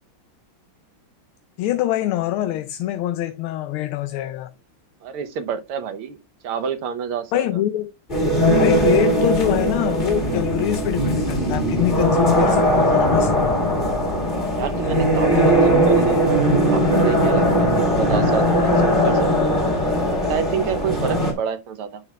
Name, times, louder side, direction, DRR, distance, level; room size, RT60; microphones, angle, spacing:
voice 1, 1.6-4.5 7.3-7.9 8.6-13.7, left 12 dB, 85° left, 1.5 m, -24 dB
voice 2, 5.0-6.2 6.4-7.6 14.5-19.5 20.2-22.0, right 7 dB, 90° right, 1.8 m, -28 dB
sound 1, 8.1-21.3, equal, 20° left, 2.0 m, -19 dB
10.5 x 5.7 x 2.3 m
omnidirectional pair, 2.3 m